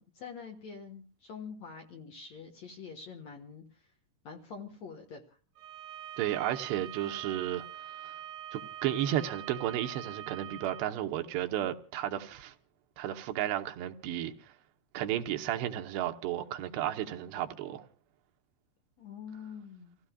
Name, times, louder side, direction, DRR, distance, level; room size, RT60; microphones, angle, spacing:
voice 1, 0.0-3.9 4.2-5.4 19.0-20.0, left 6 dB, 55° left, 2.1 m, -46 dB
Bowed string instrument, 5.6-10.9, right 11 dB, 60° right, 2.5 m, -44 dB
voice 2, 6.2-7.7 8.0-8.1 8.5-12.5 13.0-14.5 14.9-17.8, right 12 dB, 85° right, 3.1 m, -33 dB
29.5 x 16.0 x 2.3 m
omnidirectional pair, 4.7 m